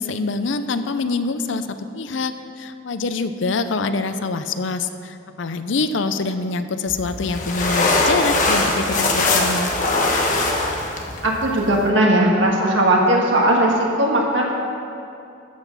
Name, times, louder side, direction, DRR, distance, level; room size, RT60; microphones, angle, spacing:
voice 1, 0.0-9.7, left 3 dB, 70° left, 10 dB, 0.6 m, -25 dB
sound 1, 6.9-11.9, left 2 dB, 40° left, 1.2 m, -21 dB
voice 2, 11.2-14.5, right 1 dB, 70° right, -2 dB, 1.8 m, -18 dB
12.5 x 6.2 x 7.0 m, 2.6 s
head